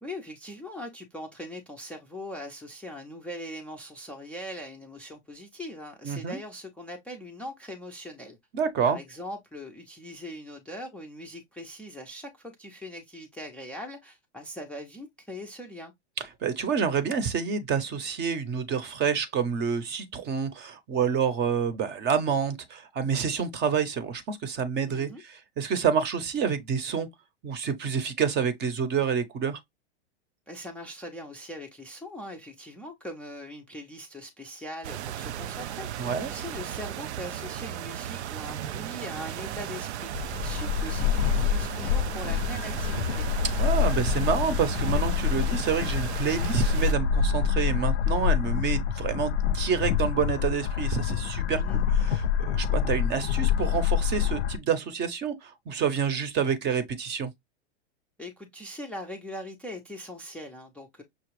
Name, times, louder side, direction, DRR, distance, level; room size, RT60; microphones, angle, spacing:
voice 1, 0.0-8.4 8.8-15.9 24.9-25.2 30.5-43.3 51.5-51.8 58.2-61.0, left 1 dB, 5° left, 0.5 m, -41 dB
voice 2, 6.0-6.4 8.5-9.0 16.2-27.1 27.4-29.6 36.0-36.3 43.6-57.3, right 6 dB, 30° right, 0.7 m, -28 dB
sound 1, 34.8-46.9, right 11 dB, 75° right, 0.5 m, -35 dB
sound 2, 40.1-54.6, left 8 dB, 75° left, 0.6 m, -26 dB
5.9 x 2.3 x 3.1 m
hypercardioid pair, 120°, 34 cm